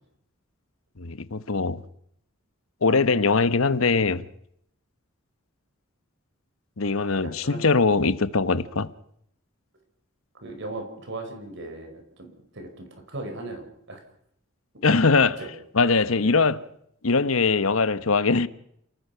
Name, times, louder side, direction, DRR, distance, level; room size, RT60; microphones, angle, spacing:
voice 1, 1.0-1.8 2.8-4.2 6.8-8.9 14.8-15.4 15.7-16.6 17.0-18.5, left 4 dB, 85° left, 1.1 m, -21 dB
voice 2, 7.2-7.7 10.4-14.0 15.4-15.5 16.1-16.3, right 2 dB, 65° right, 5.1 m, -38 dB
29.5 x 18.5 x 5.8 m
head